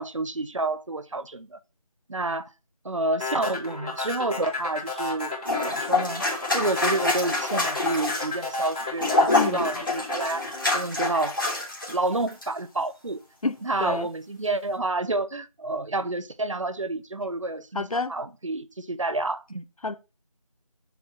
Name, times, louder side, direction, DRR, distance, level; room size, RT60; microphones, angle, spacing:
voice 1, 0.0-1.6 2.1-2.5 2.8-5.3 5.7-6.2 6.5-10.5 10.7-11.4 11.9-13.2 13.6-19.6, right 2 dB, 55° right, 0.7 m, -29 dB
sound 1, 3.2-11.5, left 3 dB, 5° left, 2.6 m, -32 dB
sound 2, 5.4-11.9 12.3-12.5, left 2 dB, 35° left, 3.0 m, -26 dB
voice 2, 9.3-9.6 13.4-14.1 17.7-18.1 19.8-19.9, left 3 dB, 70° left, 0.8 m, -29 dB
7.0 x 6.2 x 4.2 m
figure-of-eight pair, 175°, 19 cm